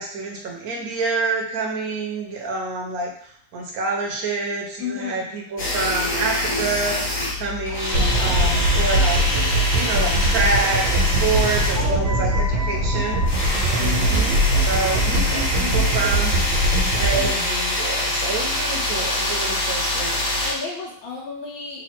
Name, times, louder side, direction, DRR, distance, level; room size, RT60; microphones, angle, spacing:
voice 1, 0.0-13.2 13.6-14.4 14.6-16.6 17.0-20.3, right 3 dB, 55° right, 0 dB, 1.2 m, -27 dB
voice 2, 4.8-5.3 7.7-9.0 11.3-12.6 13.0-13.1 13.8-14.4 20.4-21.8, left 4 dB, 90° left, -6 dB, 1.6 m, -33 dB
sound 1, 5.6-20.5, left 1 dB, 45° left, 1.8 m, -25 dB
sound 2, 7.9-17.3, right 1 dB, 80° right, 1.7 m, -21 dB
4.1 x 2.5 x 4.3 m, 0.63 s
omnidirectional pair, 2.1 m